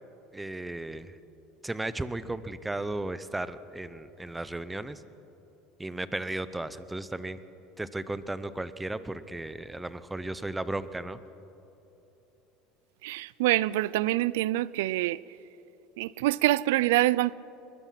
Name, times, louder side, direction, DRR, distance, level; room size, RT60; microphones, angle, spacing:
voice 1, 0.3-1.2 1.6-5.0 5.8-7.4 7.8-11.2, right 2 dB, 10° right, 0.9 m, -35 dB
voice 2, 13.0-15.2 16.0-17.3, right 17 dB, 90° right, 0.4 m, -25 dB
23.5 x 22.0 x 5.9 m
supercardioid pair, 120°, 0 cm